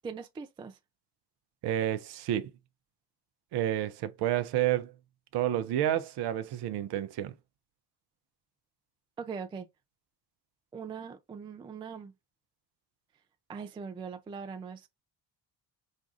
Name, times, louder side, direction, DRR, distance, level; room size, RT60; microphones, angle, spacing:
voice 1, 0.0-0.8 9.2-9.7 10.7-12.1 13.5-14.9, right 6 dB, 10° right, 0.3 m, -41 dB
voice 2, 1.6-2.5 3.5-4.9 5.3-7.3, right 12 dB, 50° right, 0.7 m, -30 dB
5.2 x 2.3 x 2.5 m
hypercardioid pair, 50°, 50 cm